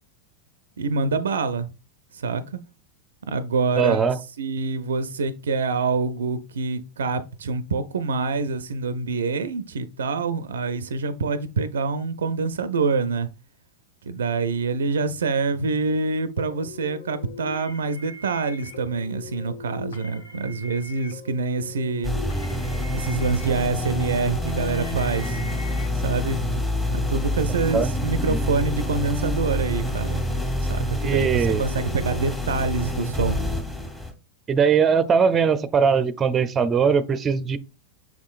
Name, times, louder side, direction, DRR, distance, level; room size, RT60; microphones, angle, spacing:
voice 1, 0.8-1.7 2.1-2.6 3.2-13.3 14.0-22.1 22.9-25.4 25.9-26.4 26.9-30.3 30.6-33.4, right 4 dB, 85° right, 0.4 m, -26 dB
voice 2, 3.8-4.2 27.7-27.9 28.3-28.4 31.0-31.6 34.5-37.6, right 6 dB, 25° right, 0.5 m, -20 dB
sound 1, 16.4-25.9, left 4 dB, 85° left, 0.9 m, -41 dB
sound 2, 22.0-34.1, equal, 15° left, 1.5 m, -27 dB
6.0 x 3.6 x 2.4 m
hypercardioid pair, 105°, 0 cm